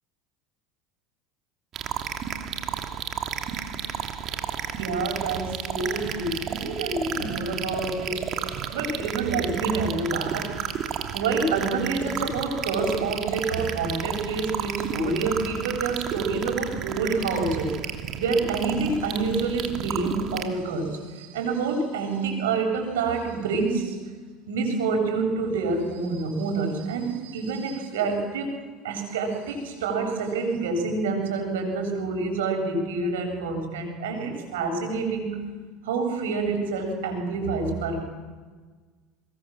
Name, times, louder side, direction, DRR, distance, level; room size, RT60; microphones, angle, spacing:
sound 1, 1.7-20.5, right 8 dB, 50° right, 2.9 m, -32 dB
voice 1, 4.8-8.3 8.7-10.6 11.1-17.8 18.2-24.0 24.5-28.5 28.8-35.3 35.8-38.0, right 4 dB, 85° right, 3 dB, 7.5 m, -27 dB
24.0 x 21.0 x 7.6 m, 1.4 s
hypercardioid pair, 90°, 0 cm